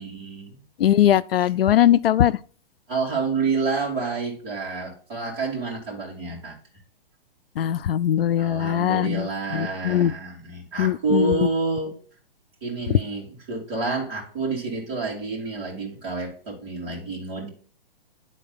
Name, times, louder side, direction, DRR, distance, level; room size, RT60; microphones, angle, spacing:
voice 1, 0.0-0.6 2.9-6.6 8.4-11.9 12.6-17.5, right 3 dB, 25° right, 2.6 m, -28 dB
voice 2, 0.8-2.4 7.6-9.3 9.5-10.1 10.8-11.4, left 11 dB, 70° left, 0.5 m, -20 dB
10.0 x 3.9 x 4.0 m
hypercardioid pair, 170°, 30 cm